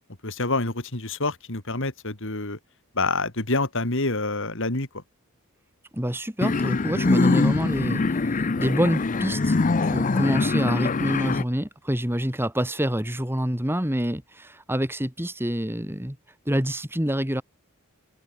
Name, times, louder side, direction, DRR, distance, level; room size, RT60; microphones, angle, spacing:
voice 1, 0.2-2.6 2.9-5.0, left 2 dB, 60° left, 3.4 m, -27 dB
voice 2, 5.9-9.6 9.8-16.2 16.5-17.4, equal, 10° right, 2.2 m, -27 dB
sound 1, 6.4-11.4, left 3 dB, 35° left, 0.5 m, -23 dB
open air
head